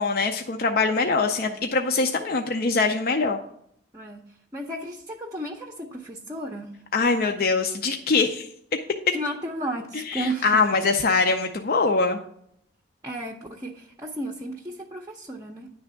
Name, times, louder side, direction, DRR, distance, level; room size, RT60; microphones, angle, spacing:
voice 1, 0.0-3.4 6.9-8.5 10.1-12.2, left 4 dB, 50° left, 4 dB, 0.5 m, -23 dB
voice 2, 3.9-6.7 9.1-10.7 13.0-15.7, right 1 dB, 20° right, 2 dB, 0.6 m, -34 dB
9.9 x 3.4 x 6.8 m, 0.70 s
head